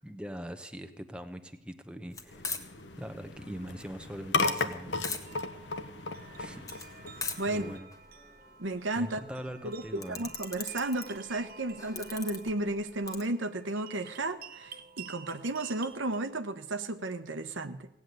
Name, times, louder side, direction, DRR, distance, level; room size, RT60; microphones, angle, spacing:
voice 1, 0.0-2.5 3.0-5.1 6.4-6.6 7.5-7.9 9.0-10.3, equal, 5° right, 7 dB, 0.9 m, -42 dB
sound 1, 2.1-13.2, left 4 dB, 15° left, 1.3 m, -43 dB
sound 2, 2.3-7.8, left 3 dB, 65° left, 1.1 m, -35 dB
sound 3, 5.3-16.2, right 6 dB, 50° right, 0.9 m, -51 dB
voice 2, 7.4-7.8 8.6-9.2 9.6-9.8 10.1-17.9, right 2 dB, 90° right, 10 dB, 1.1 m, -33 dB
17.5 x 8.3 x 9.3 m, 0.86 s
head